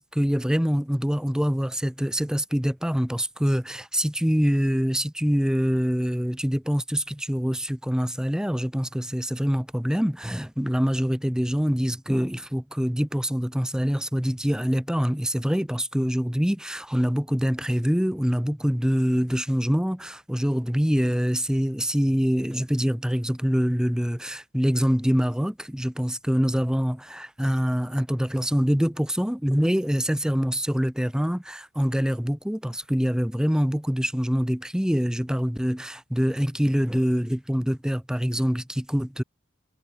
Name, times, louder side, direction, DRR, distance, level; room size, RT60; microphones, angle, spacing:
voice 1, 0.0-39.2, equal, 5° right, 0.9 m, -25 dB
head